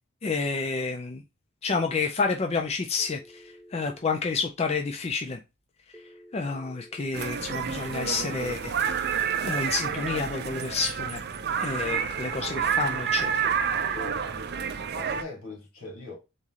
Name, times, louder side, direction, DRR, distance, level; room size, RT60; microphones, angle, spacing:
voice 1, 0.2-1.2 1.6-5.4 5.9-6.0 6.3-11.2 11.6-13.3, left 4 dB, 30° left, 0.4 m, -29 dB
Telephone, 3.0-4.0 5.9-7.0 8.9-9.9, equal, 5° left, 1.2 m, -51 dB
sound 1, 7.1-15.2, right 7 dB, 50° right, 0.5 m, -29 dB
voice 2, 13.9-16.2, left 2 dB, 80° left, 2.2 m, -42 dB
4.1 x 3.2 x 3.6 m
head